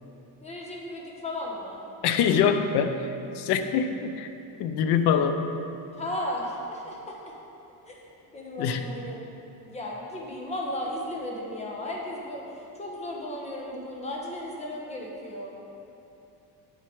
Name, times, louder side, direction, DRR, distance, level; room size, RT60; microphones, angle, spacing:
voice 1, 0.4-1.8 6.0-7.3 7.9-8.0 8.3-9.2 9.6-15.5, left 1 dB, 15° left, -2 dB, 1.1 m, -35 dB
voice 2, 2.0-4.3 4.6-5.4 8.6-8.8, left 7 dB, 80° left, 8 dB, 0.7 m, -24 dB
7.8 x 7.0 x 4.8 m, 2.8 s
cardioid pair, 165°, 39 cm